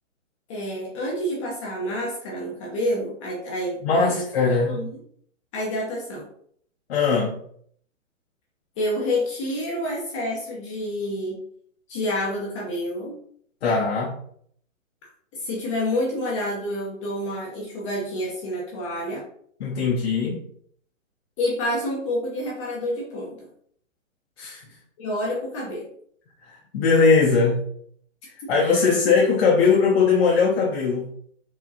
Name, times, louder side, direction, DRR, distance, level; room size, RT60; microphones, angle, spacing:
voice 1, 0.5-4.2 4.6-5.0 5.5-6.3 8.8-11.4 11.9-13.2 15.3-19.2 21.4-23.5 25.0-25.8 28.4-28.8, left 1 dB, 25° left, -3 dB, 0.7 m, -28 dB
voice 2, 3.8-4.8 6.9-7.3 13.6-14.2 19.6-20.4 24.4-24.6 26.7-27.7 28.5-31.1, left 4 dB, 50° left, -2 dB, 0.9 m, -20 dB
4.7 x 2.9 x 2.7 m, 0.63 s
hypercardioid pair, 140°, 41 cm